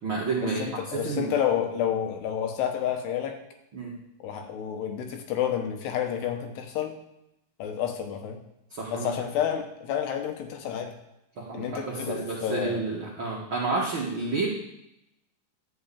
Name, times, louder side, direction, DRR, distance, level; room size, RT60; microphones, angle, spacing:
voice 1, 0.0-1.3 3.7-3.9 8.7-9.1 11.4-14.5, right 4 dB, 65° right, -4 dB, 1.2 m, -30 dB
voice 2, 0.6-3.4 4.2-7.0 7.6-8.4 8.9-10.9 11.5-12.9, left 9 dB, 75° left, 5 dB, 3.1 m, -29 dB
11.5 x 4.7 x 8.5 m, 0.84 s
omnidirectional pair, 4.9 m